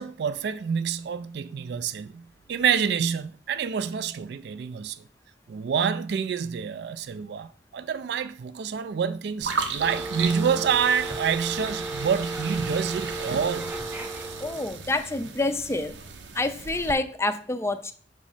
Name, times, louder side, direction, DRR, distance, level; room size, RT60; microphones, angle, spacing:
voice 1, 0.0-2.2 2.5-5.0 5.5-7.5 7.7-13.7, right 7 dB, 65° right, 0.3 m, -27 dB
sound 1, 9.4-16.9, right 5 dB, 85° right, 0.8 m, -36 dB
sound 2, 9.8-14.8, right 2 dB, 10° right, 0.8 m, -35 dB
voice 2, 14.4-16.0 16.3-17.9, left 2 dB, 15° left, 0.4 m, -27 dB
6.1 x 3.0 x 5.5 m
head